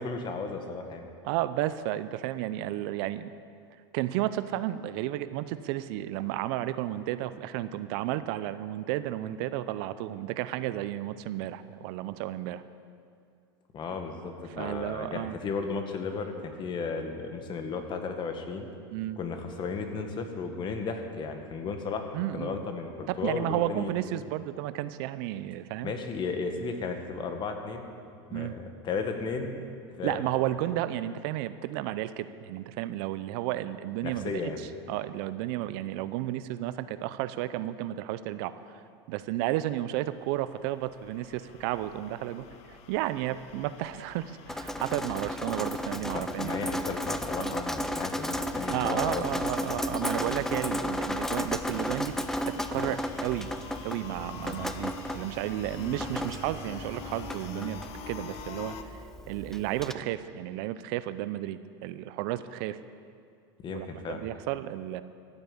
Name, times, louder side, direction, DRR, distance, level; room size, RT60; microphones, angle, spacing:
voice 1, 0.0-1.1 13.7-18.7 19.2-23.9 25.8-27.9 28.3-29.6 30.0-30.2 34.0-34.6 46.1-49.4 54.4-54.6 63.6-64.2, left 4 dB, 35° left, 5 dB, 1.7 m, -34 dB
voice 2, 1.2-3.3 3.9-12.6 14.6-15.4 18.9-19.2 22.1-22.6 23.1-26.0 28.3-28.6 30.0-34.3 34.9-38.8 39.1-42.5 42.9-46.8 47.4-47.6 48.6-53.5 53.8-58.8 59.3-62.8 63.7-65.0, right 14 dB, 60° right, 13 dB, 0.6 m, -32 dB
sound 1, 40.1-58.8, left 8 dB, 50° left, 1.0 m, -47 dB
Drip, 44.5-59.9, left 1 dB, 5° left, 0.6 m, -34 dB
sound 2, 50.9-57.9, right 5 dB, 15° right, 1.3 m, -49 dB
14.0 x 7.9 x 8.6 m, 2.3 s
hypercardioid pair, 110°, 14 cm